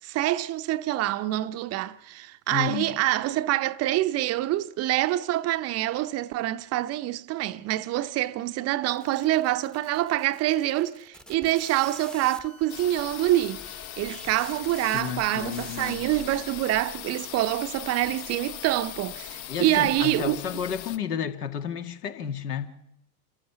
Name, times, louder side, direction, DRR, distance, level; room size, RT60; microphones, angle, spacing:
voice 1, 0.0-20.4, right 15 dB, 35° right, 0.7 m, -26 dB
voice 2, 2.5-3.0 14.9-16.1 19.5-22.7, left 8 dB, 75° left, 2.2 m, -32 dB
sound 1, 8.9-16.6, equal, ahead, 0.9 m, -46 dB
sound 2, 12.7-21.0, left 12 dB, 40° left, 0.9 m, -40 dB
27.5 x 14.0 x 6.9 m
hypercardioid pair, 95°, 46 cm